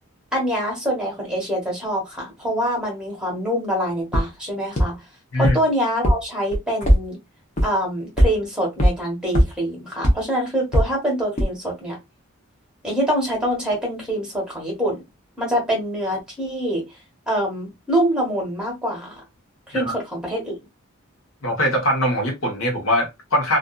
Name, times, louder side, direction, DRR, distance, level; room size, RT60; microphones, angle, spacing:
voice 1, 0.3-5.0 5.4-7.2 7.6-12.0 12.8-15.0 15.4-16.8 17.3-19.2 19.7-20.6, equal, 5° right, 1.1 m, -25 dB
sound 1, 4.1-4.2 4.8-4.9 5.4-5.5 6.0-6.1 6.5-7.0 7.6-7.7 8.2-8.3 8.8-8.9 9.4-9.5 10.0-10.1 10.7-10.8 11.4-11.5, equal, 35° left, 0.8 m, -15 dB
voice 2, 21.4-23.6, equal, 65° left, 1.1 m, -22 dB
2.6 x 2.5 x 2.3 m
head